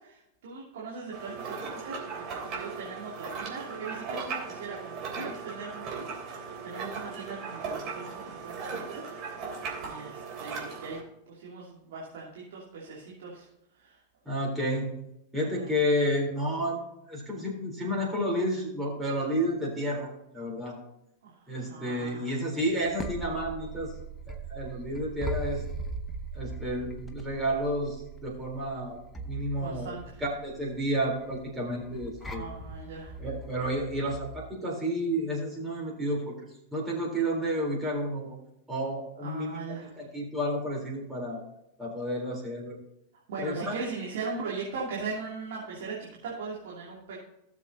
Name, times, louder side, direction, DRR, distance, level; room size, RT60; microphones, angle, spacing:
voice 1, 0.0-14.0 15.3-15.7 21.2-22.4 29.6-30.2 32.2-33.2 39.2-40.0 43.3-47.1, right 4 dB, 55° right, -5 dB, 2.7 m, -40 dB
sound 1, 1.1-11.0, right 5 dB, 35° right, 3.2 m, -38 dB
voice 2, 14.3-14.9 15.3-16.8 17.1-20.8 21.5-23.9 24.3-25.7 26.3-29.0 29.3-29.9 30.2-32.4 33.2-36.3 36.7-38.4 38.7-39.6 40.0-41.4 41.8-42.8 43.4-43.7, equal, 10° right, -3 dB, 3.7 m, -31 dB
sound 2, 22.6-34.5, right 2 dB, 15° left, 1.1 m, -40 dB
17.0 x 7.1 x 2.8 m, 0.83 s
figure-of-eight pair, 90°, 0 cm